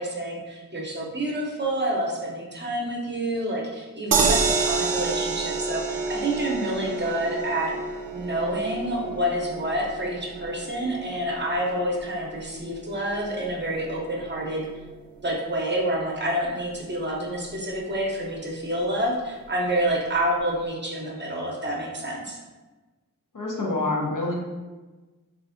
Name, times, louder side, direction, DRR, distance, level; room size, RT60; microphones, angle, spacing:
voice 1, 0.0-7.7 8.1-14.7 15.2-22.4, right 1 dB, 30° right, -2 dB, 0.7 m, -28 dB
sound 1, 4.1-16.3 16.7-16.8 17.1-17.2, right 4 dB, 70° right, 0.5 m, -30 dB
voice 2, 23.3-24.3, left 2 dB, 60° left, -2 dB, 0.7 m, -26 dB
3.2 x 2.5 x 2.5 m, 1.2 s
wide cardioid pair, 55°, 36 cm